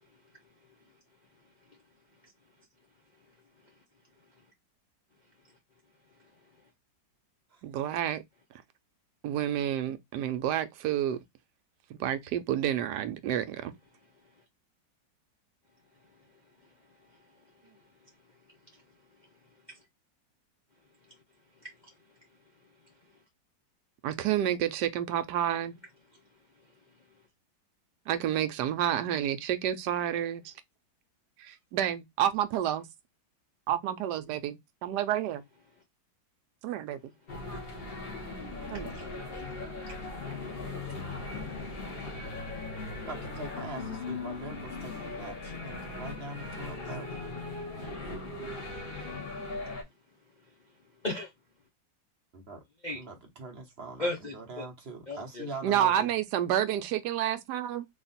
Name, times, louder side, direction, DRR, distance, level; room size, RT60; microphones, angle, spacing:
voice 1, 7.6-8.2 9.2-11.2 11.9-13.7 24.0-25.8 28.1-30.5 31.4-32.9 33.7-35.4 36.6-37.0 38.7-38.9 55.6-57.9, right 11 dB, 75° right, 1.1 m, -29 dB
voice 2, 16.9-17.8 19.7-19.8 21.6-21.9 37.5-37.8 38.7-39.1 39.9-40.0 51.0-51.3 52.8-53.0 54.0-54.6 55.1-55.5, left 2 dB, 60° left, 0.4 m, -38 dB
sound 1, 37.3-49.8, left 3 dB, 40° left, 1.1 m, -39 dB
voice 3, 42.9-47.2 52.3-52.6 52.9-56.1, right 3 dB, 50° right, 0.8 m, -43 dB
3.6 x 2.4 x 3.9 m
omnidirectional pair, 2.0 m